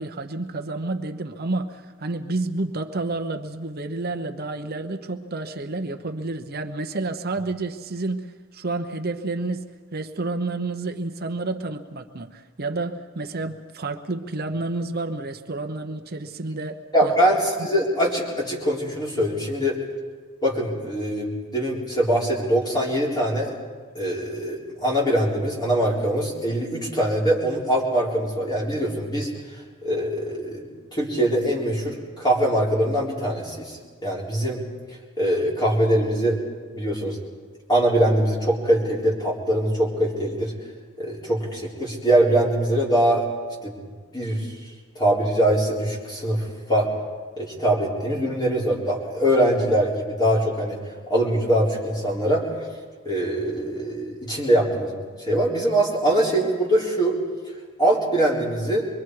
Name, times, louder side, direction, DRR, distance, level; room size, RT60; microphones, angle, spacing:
voice 1, 0.0-8.3 8.5-9.6 9.9-17.1 17.6-17.7, right 2 dB, 50° right, 7 dB, 0.9 m, -30 dB
voice 2, 16.9-19.8 20.4-23.5 23.9-29.3 29.8-30.6 30.9-33.8 34.0-34.6 35.2-36.4 36.7-37.2 37.7-40.5 41.0-43.2 43.6-43.7 44.1-44.5 45.0-46.9 47.4-50.8 51.1-52.5 53.0-57.2 57.8-58.8, right 1 dB, 20° left, -3 dB, 4.0 m, -22 dB
25.0 x 22.5 x 4.8 m, 1.5 s
head